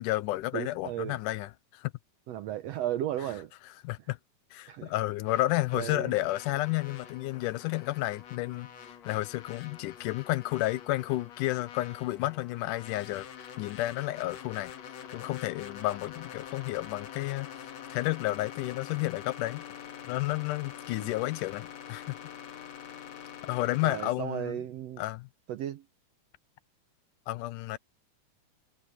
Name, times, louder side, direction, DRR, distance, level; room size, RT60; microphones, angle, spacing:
voice 1, 0.0-1.9 3.8-4.2 4.5-8.7 9.1-13.3 13.6-14.7 15.1-17.5 17.9-19.6 20.1-22.2 23.4-24.6 25.0-25.3 27.3-27.8, left 17 dB, 90° left, 2.2 m, -31 dB
voice 2, 0.5-1.2 2.3-3.5 4.7-4.9 5.7-6.1 21.0-21.1 23.8-25.0 25.5-25.8, right 12 dB, 75° right, 1.6 m, -35 dB
sound 1, 5.3-24.1, left 9 dB, 60° left, 2.6 m, -46 dB
omnidirectional pair, 3.7 m